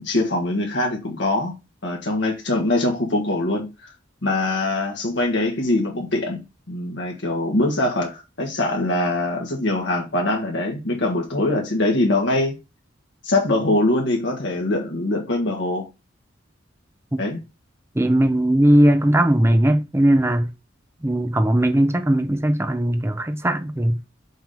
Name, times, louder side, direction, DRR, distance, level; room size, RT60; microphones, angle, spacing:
voice 1, 0.0-1.6 1.8-3.9 4.2-12.6 13.2-15.9 17.2-17.4, left 2 dB, 60° left, 1.4 m, -23 dB
voice 2, 17.9-20.5 21.0-24.0, right 1 dB, 15° right, 0.7 m, -18 dB
6.2 x 3.5 x 5.2 m
head